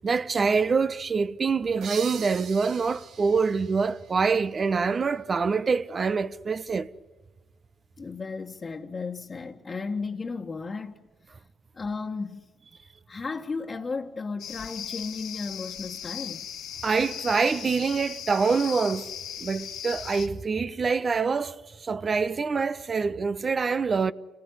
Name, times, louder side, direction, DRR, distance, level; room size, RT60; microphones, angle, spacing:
voice 1, 0.0-6.9 16.8-19.1 19.4-24.1, right 5 dB, 45° right, 1.1 m, -25 dB
sound 1, 1.8-5.2, right 7 dB, 75° right, 2.2 m, -42 dB
voice 2, 8.0-11.4 11.7-12.5 13.1-16.5, left 4 dB, 40° left, 1.7 m, -34 dB
sound 2, 14.4-20.3, left 9 dB, 80° left, 2.0 m, -38 dB
29.0 x 19.5 x 9.7 m
supercardioid pair, 55°, 0 cm